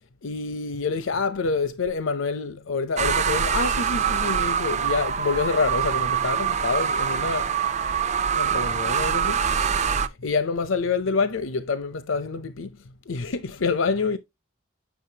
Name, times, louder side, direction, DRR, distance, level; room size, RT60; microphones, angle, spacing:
voice 1, 0.2-7.5 8.3-9.7 9.9-12.8 13.1-14.2, left 4 dB, 80° left, 0.6 m, -27 dB
sound 1, 3.0-10.1, right 7 dB, 35° right, 0.5 m, -24 dB
9.3 x 6.2 x 2.8 m
head